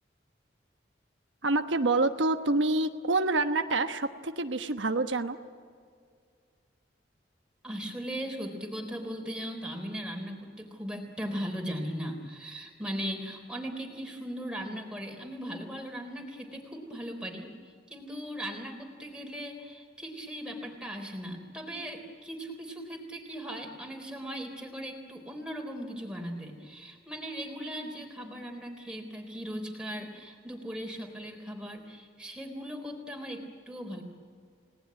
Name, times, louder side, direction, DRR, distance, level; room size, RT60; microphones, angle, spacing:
voice 1, 1.4-5.4, right 2 dB, 90° right, 7 dB, 1.2 m, -27 dB
voice 2, 7.6-17.5 17.9-34.0, equal, 5° right, 2 dB, 3.7 m, -38 dB
30.0 x 19.0 x 9.5 m, 2.2 s
head